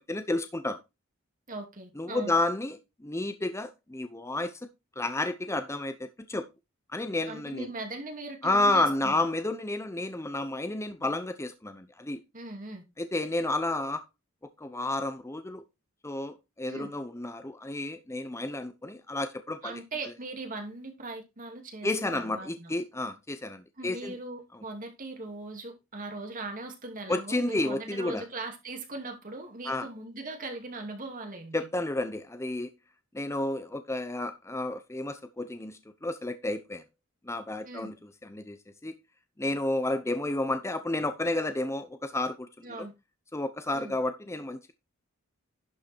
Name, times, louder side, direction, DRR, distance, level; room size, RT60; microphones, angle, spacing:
voice 1, 0.1-0.8 2.0-4.7 5.0-6.5 6.9-7.7 8.4-12.2 13.0-14.0 14.6-15.6 16.0-19.8 21.8-24.1 27.1-28.2 29.7-29.9 31.5-32.7 33.1-36.8 37.2-38.9 39.4-42.9 43.3-44.7, left 2 dB, 15° left, 0.7 m, -31 dB
voice 2, 1.5-2.3 7.3-9.2 12.3-12.8 16.7-16.9 19.6-22.7 23.8-31.6 37.6-37.9 42.6-42.9 43.7-44.0, right 2 dB, 40° right, 2.6 m, -40 dB
11.5 x 5.3 x 4.5 m
head